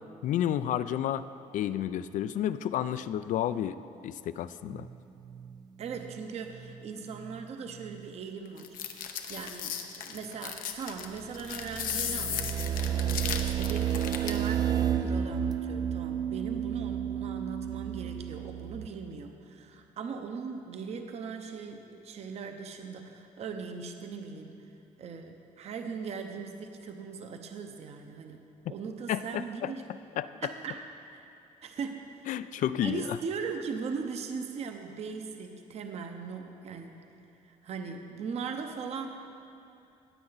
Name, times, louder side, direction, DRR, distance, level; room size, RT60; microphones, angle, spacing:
voice 1, 0.2-1.2 1.5-3.8 4.0-4.9 29.1-29.7 30.2-30.5 32.3-33.2, left 11 dB, 65° left, 14 dB, 0.4 m, -31 dB
sound 1, 4.7-5.0 5.2-5.6 5.9-6.2 6.5-6.8 7.1-7.4 7.8-8.0 11.2-18.9, right 9 dB, 30° right, 0.4 m, -32 dB
voice 2, 5.8-9.0 9.3-24.6 25.0-29.8 30.4-30.8 31.1-31.3 31.6-32.3 32.8-37.0 37.5-39.1, right 5 dB, 50° right, 5 dB, 0.7 m, -39 dB
opening nuts, 8.6-14.5, left 9 dB, 85° left, 0.8 m, -36 dB
16.0 x 8.8 x 4.0 m, 2.7 s
cardioid pair, 155°, 14 cm